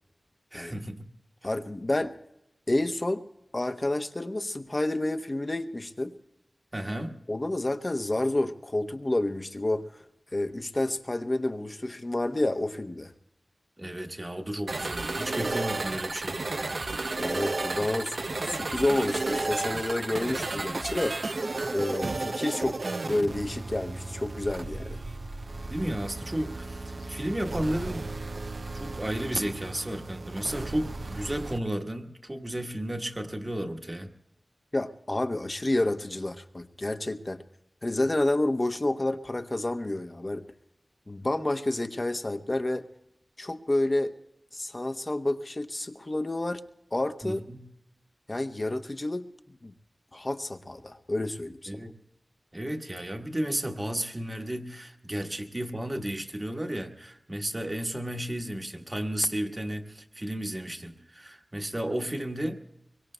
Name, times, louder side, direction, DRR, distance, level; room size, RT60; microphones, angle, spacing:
voice 1, 0.5-1.0 6.7-7.2 13.8-16.4 25.7-28.1 28.7-34.1 47.2-47.7 51.7-52.0 52.5-62.6, right 1 dB, 30° right, 5 dB, 1.3 m, -33 dB
voice 2, 1.4-2.1 2.7-3.2 3.5-6.2 7.3-10.0 10.3-13.1 17.2-18.2 18.5-21.2 21.7-22.8 23.0-25.0 34.7-37.4 37.8-40.4 41.1-42.8 43.4-44.1 44.5-46.6 46.9-47.4 48.3-49.7 50.1-51.7, left 1 dB, 40° left, 7 dB, 0.8 m, -29 dB
sound 1, 14.7-31.6, right 3 dB, 65° right, 0.5 m, -33 dB
24.0 x 22.5 x 2.2 m, 0.87 s
cardioid pair, 45°, 0 cm